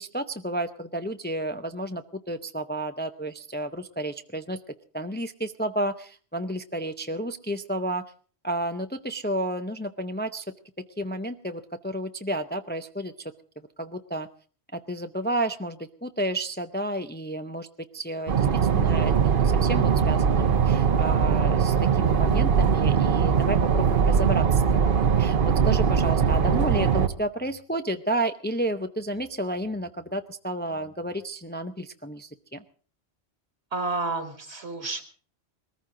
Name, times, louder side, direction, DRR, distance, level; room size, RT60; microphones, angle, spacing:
voice 1, 0.0-4.6 4.9-8.0 8.4-10.4 11.0-13.1 13.8-14.3 14.7-17.7 17.9-18.5 18.7-32.6, right 1 dB, 15° left, 8 dB, 0.5 m, -31 dB
sound 1, 18.3-27.1, right 7 dB, 55° right, 1.0 m, -21 dB
voice 2, 33.7-35.0, right 3 dB, 80° right, 6 dB, 2.2 m, -30 dB
21.0 x 14.5 x 3.8 m, 0.42 s
omnidirectional pair, 1.1 m